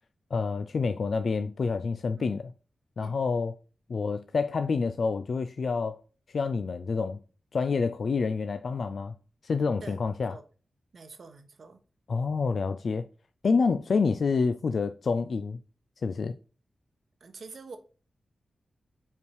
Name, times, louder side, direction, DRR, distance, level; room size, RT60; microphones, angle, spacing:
voice 1, 0.3-2.4 3.0-3.5 3.9-6.0 6.3-7.2 7.5-9.1 9.4-10.3 12.1-13.1 13.4-15.6 16.0-16.4, left 4 dB, 65° left, 0.4 m, -28 dB
voice 2, 9.8-10.4 10.9-11.8 17.2-17.8, right 4 dB, 65° right, 1.0 m, -46 dB
5.7 x 4.6 x 4.7 m
wide cardioid pair, 105°, 0 cm